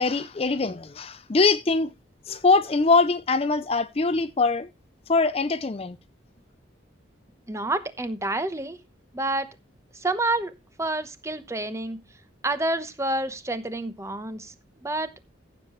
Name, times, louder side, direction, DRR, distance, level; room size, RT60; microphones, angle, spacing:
voice 1, 0.0-1.9 2.3-4.7 5.1-6.0, left 3 dB, 30° left, 0.5 m, -22 dB
voice 2, 7.5-8.8 9.1-9.5 9.9-10.5 10.8-12.0 12.4-14.5 14.8-15.1, right 2 dB, 15° right, 0.9 m, -28 dB
15.0 x 7.5 x 3.1 m
head